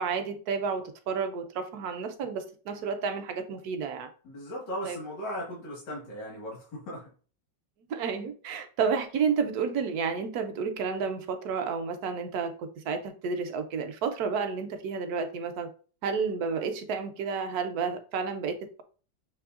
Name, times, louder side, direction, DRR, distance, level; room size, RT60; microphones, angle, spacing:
voice 1, 0.0-4.1 4.8-5.0 7.9-15.7 16.0-18.8, right 5 dB, 70° right, 1.0 m, -31 dB
voice 2, 4.2-7.1, equal, 70° left, 2.3 m, -37 dB
6.8 x 3.1 x 2.4 m
omnidirectional pair, 2.0 m